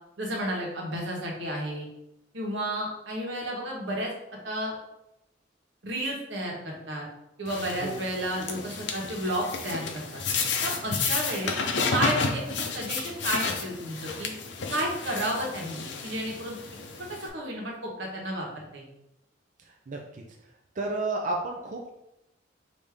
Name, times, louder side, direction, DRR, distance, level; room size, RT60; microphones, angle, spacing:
voice 1, 0.2-1.9 2.3-4.1 4.4-4.7 5.8-7.0 7.4-10.2 10.6-11.5 11.9-14.3 14.7-16.6 17.1-18.8, right 1 dB, 85° right, -2 dB, 1.2 m, -32 dB
sound 1, 7.5-17.3, left 4 dB, 70° left, 0.6 m, -32 dB
voice 2, 19.9-20.2 20.8-21.9, right 2 dB, 45° right, 0 dB, 0.5 m, -31 dB
5.1 x 2.7 x 3.5 m, 0.88 s
head